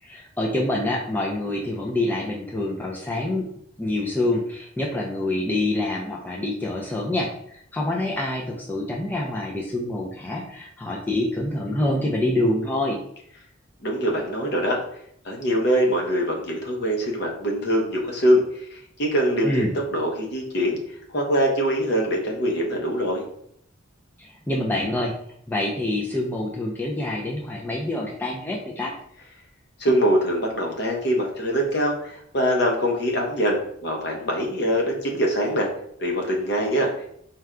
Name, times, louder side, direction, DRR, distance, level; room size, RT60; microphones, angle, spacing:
voice 1, 0.0-3.5 3.8-13.0 19.4-19.7 24.2-25.2 25.5-28.9, left 1 dB, 10° left, -2 dB, 0.4 m, -26 dB
voice 2, 13.8-14.8 15.2-18.4 18.7-20.8 21.1-23.2 29.8-35.7 36.0-37.1, equal, 55° left, 0 dB, 0.8 m, -23 dB
4.3 x 2.2 x 3.6 m, 0.69 s
head